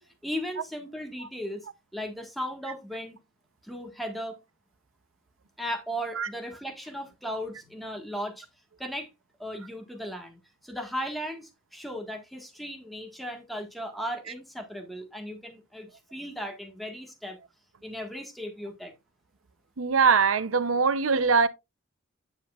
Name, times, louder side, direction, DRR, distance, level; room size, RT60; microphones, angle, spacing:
voice 1, 0.2-1.7 1.9-3.2 3.6-4.4 5.6-8.4 8.8-9.1 9.4-17.4 17.8-18.9, equal, ahead, 1.6 m, -36 dB
voice 2, 19.8-21.5, right 5 dB, 80° right, 0.7 m, -22 dB
9.5 x 7.3 x 2.4 m
head